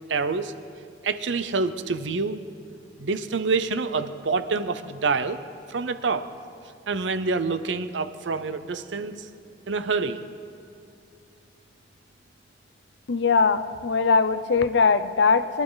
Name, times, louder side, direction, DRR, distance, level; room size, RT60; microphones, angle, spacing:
voice 1, 0.1-0.5 1.0-2.4 3.0-5.4 5.7-6.3 6.9-9.2 9.7-10.2, right 4 dB, 70° right, 11 dB, 0.7 m, -27 dB
voice 2, 13.1-15.6, left 4 dB, 65° left, 11 dB, 0.6 m, -21 dB
22.5 x 12.0 x 4.0 m, 2.6 s
head